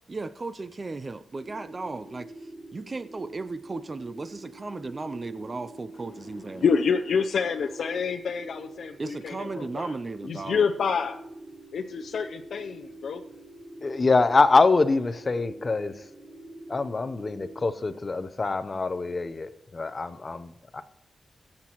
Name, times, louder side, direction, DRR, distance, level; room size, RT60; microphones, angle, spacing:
voice 1, 0.1-6.6 9.0-10.6, right 3 dB, 35° right, 12 dB, 0.4 m, -36 dB
sound 1, 1.4-17.6, right 1 dB, ahead, 2.9 m, -46 dB
voice 2, 6.6-9.9 10.3-11.2 11.7-13.2, left 6 dB, 85° left, 4 dB, 0.5 m, -27 dB
voice 3, 13.8-15.9 16.7-20.8, left 3 dB, 35° left, 12 dB, 0.7 m, -24 dB
22.0 x 7.4 x 3.0 m, 0.85 s
wide cardioid pair, 120°, 0 cm